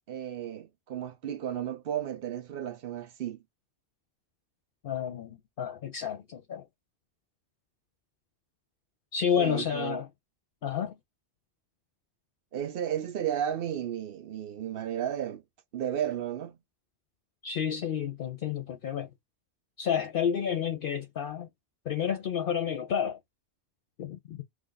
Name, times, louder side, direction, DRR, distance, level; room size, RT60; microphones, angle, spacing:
voice 1, 0.1-3.4 9.4-10.0 12.5-15.4 15.7-16.6, right 10 dB, 65° right, 0.8 m, -33 dB
voice 2, 4.8-6.7 9.1-10.1 10.6-10.9 17.4-19.1 19.8-21.5 21.8-23.2 24.0-24.4, left 8 dB, 60° left, 0.8 m, -30 dB
3.1 x 2.5 x 3.9 m
omnidirectional pair, 1.1 m